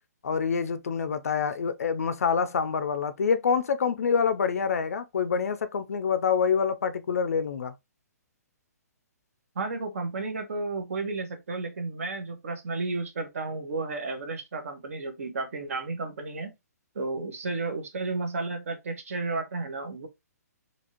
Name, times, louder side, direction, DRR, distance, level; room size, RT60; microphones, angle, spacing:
voice 1, 0.2-7.7, left 6 dB, 60° left, 0.4 m, -26 dB
voice 2, 9.5-16.5 16.9-20.1, right 3 dB, 55° right, 0.9 m, -32 dB
2.7 x 2.6 x 2.8 m
hypercardioid pair, 180°, 9 cm